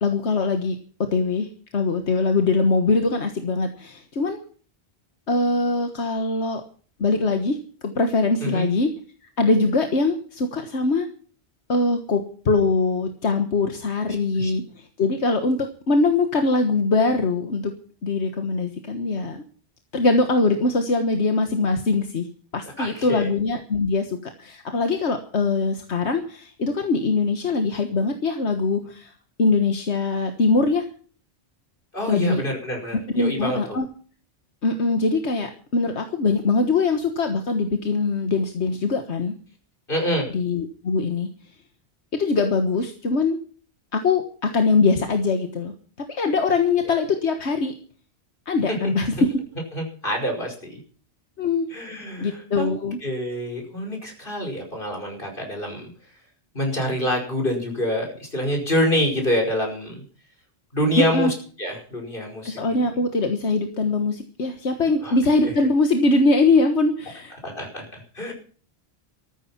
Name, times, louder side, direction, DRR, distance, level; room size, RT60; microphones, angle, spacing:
voice 1, 0.0-4.4 5.3-6.6 7.0-7.6 7.8-8.9 9.4-11.1 11.7-17.7 18.0-19.4 19.9-22.3 22.5-29.1 29.4-30.8 32.1-32.4 33.1-33.9 34.6-39.3 40.3-41.3 42.1-43.4 43.9-45.7 46.0-47.7 48.5-49.3 51.4-51.7 52.2-53.0 61.0-61.3 62.5-67.3, left 3 dB, 80° left, 6 dB, 1.7 m, -22 dB
voice 2, 22.8-23.3 31.9-33.8 39.9-40.3 48.7-48.9 49.7-50.8 51.7-52.7 53.0-55.9 56.5-60.0 60.7-61.3 61.6-62.6 65.0-65.2 67.4-68.3, equal, 50° left, 3 dB, 5.6 m, -26 dB
14.0 x 14.0 x 5.8 m, 0.43 s
omnidirectional pair, 1.1 m